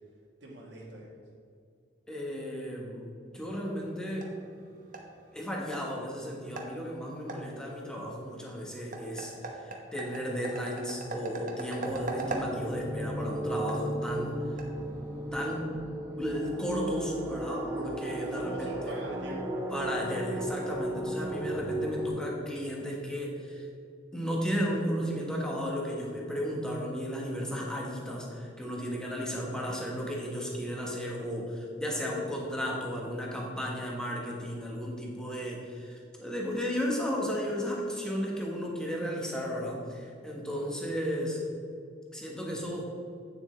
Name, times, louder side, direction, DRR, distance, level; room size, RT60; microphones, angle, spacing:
voice 1, 0.4-1.2 18.2-19.4 32.0-32.1, right 1 dB, 70° right, -4 dB, 1.5 m, -44 dB
voice 2, 2.1-4.3 5.3-14.4 15.3-15.7 16.2-18.9 19.7-23.7 24.1-41.4 42.1-42.9, equal, 5° left, -2 dB, 1.3 m, -34 dB
sound 1, 3.5-15.4, right 2 dB, 45° right, 1.0 m, -42 dB
sound 2, 11.8-22.1, right 1 dB, 15° right, 0.9 m, -35 dB
8.8 x 7.1 x 3.3 m, 2.4 s
head